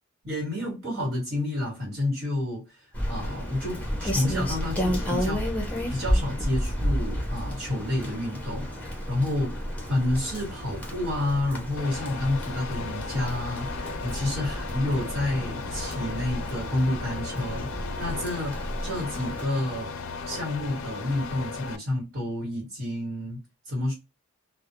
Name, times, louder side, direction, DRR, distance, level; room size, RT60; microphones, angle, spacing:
voice 1, 0.2-5.4 5.9-17.7 18.0-18.5 18.8-19.9 20.3-23.9, left 1 dB, 60° right, 1.4 m, -29 dB
Rain, 2.9-19.5, equal, 5° left, 0.5 m, -32 dB
sound 1, 11.8-21.8, left 4 dB, 75° left, 0.4 m, -36 dB
2.3 x 2.0 x 2.9 m
head